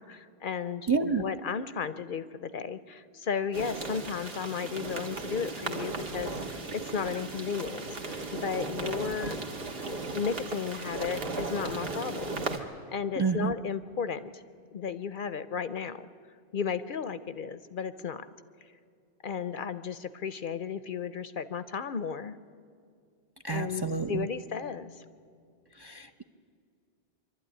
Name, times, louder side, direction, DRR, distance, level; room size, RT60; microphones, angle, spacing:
voice 1, 0.0-9.4 10.1-12.4 12.9-14.4 14.7-16.1 16.5-18.2 19.2-22.4 23.5-24.9, left 6 dB, 55° left, 13 dB, 0.7 m, -34 dB
voice 2, 0.9-1.2 13.2-13.5 23.4-24.3 25.8-26.2, right 5 dB, 30° right, 7 dB, 0.5 m, -29 dB
sound 1, 3.5-12.6, right 3 dB, 65° right, 1.6 m, -36 dB
25.0 x 12.5 x 9.9 m, 2.3 s
omnidirectional pair, 1.1 m